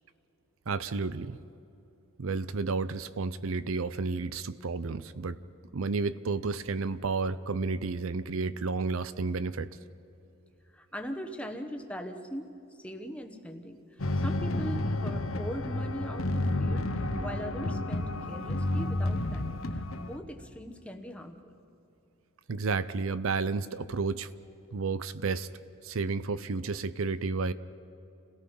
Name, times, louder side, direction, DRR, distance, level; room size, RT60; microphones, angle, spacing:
voice 1, 0.7-1.4 2.2-5.4 5.7-9.7 22.5-24.3 24.7-25.5 25.8-27.5, right 4 dB, 70° right, 15 dB, 0.6 m, -31 dB
voice 2, 10.7-12.5 12.8-21.5, equal, 5° left, 5 dB, 1.2 m, -41 dB
sound 1, 14.0-20.2, left 1 dB, 70° left, 1.1 m, -31 dB
29.5 x 17.5 x 5.5 m, 2.8 s
head